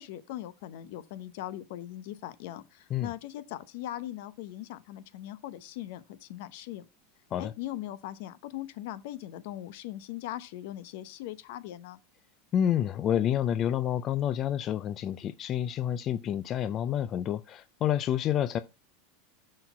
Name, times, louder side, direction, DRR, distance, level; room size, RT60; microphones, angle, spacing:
voice 1, 0.0-6.9 7.4-12.0, left 13 dB, 65° left, 0.8 m, -40 dB
voice 2, 12.5-18.6, left 10 dB, 35° left, 0.4 m, -29 dB
6.6 x 4.1 x 5.7 m
supercardioid pair, 140°, 0 cm